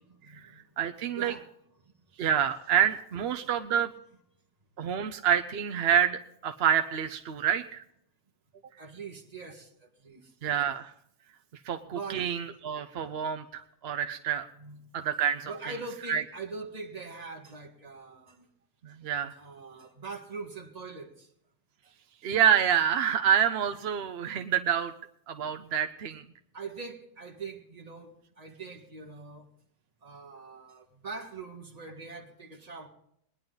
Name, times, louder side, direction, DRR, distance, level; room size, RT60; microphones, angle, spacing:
voice 1, 0.0-0.7 1.1-1.5 3.4-3.5 8.8-10.3 11.9-12.3 14.5-14.8 15.4-18.5 19.4-21.3 26.5-29.4 30.0-32.9, right 4 dB, 25° right, -1 dB, 1.8 m, -42 dB
voice 2, 0.8-1.3 2.2-3.9 4.8-7.8 10.4-10.9 11.6-14.5 14.9-15.5 16.1-16.2 18.8-19.3 22.2-24.9 25.3-26.2, right 9 dB, 60° right, 7 dB, 0.7 m, -27 dB
20.0 x 10.5 x 3.9 m, 0.71 s
omnidirectional pair, 1.5 m